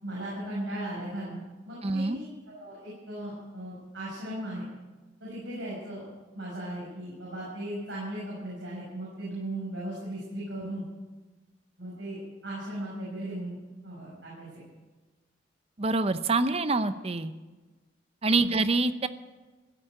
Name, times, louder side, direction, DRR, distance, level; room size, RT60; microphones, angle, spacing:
voice 1, 0.0-4.6 5.2-6.0 6.3-10.9 11.8-14.6 18.4-18.5, right 1 dB, 70° right, -6 dB, 6.0 m, -37 dB
voice 2, 1.8-2.2 15.8-17.3 18.2-19.1, right 3 dB, 30° right, 12 dB, 0.6 m, -26 dB
16.0 x 8.5 x 9.1 m, 1.2 s
head